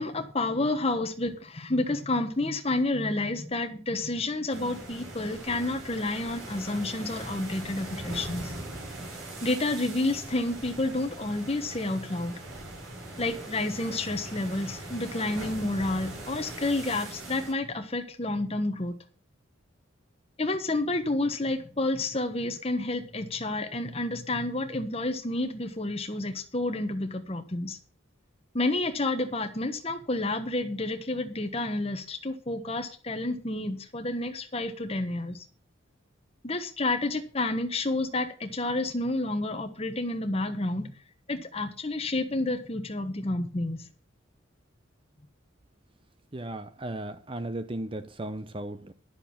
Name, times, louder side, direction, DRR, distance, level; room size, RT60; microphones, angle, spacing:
voice 1, 0.0-8.5 9.4-12.4 13.2-18.9 20.4-27.8 28.5-35.4 36.4-40.9 41.3-43.9, left 2 dB, 30° left, 1.2 m, -30 dB
sound 1, 4.5-17.5, right 1 dB, 80° right, 4.9 m, -41 dB
voice 2, 46.3-48.9, right 1 dB, 25° right, 0.6 m, -36 dB
11.5 x 7.0 x 7.1 m
head